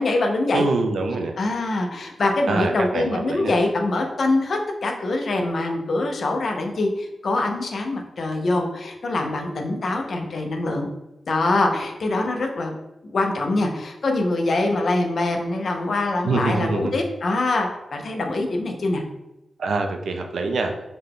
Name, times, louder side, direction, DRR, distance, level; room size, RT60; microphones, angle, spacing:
voice 1, 0.0-0.6 1.4-10.9 11.3-12.7 13.0-19.0, left 2 dB, 60° left, 3 dB, 0.6 m, -24 dB
voice 2, 0.5-1.4 2.5-3.5 16.2-16.9 19.6-20.7, right 3 dB, 80° right, 4 dB, 0.5 m, -24 dB
3.9 x 2.2 x 3.6 m, 0.96 s
wide cardioid pair, 115°, 0 cm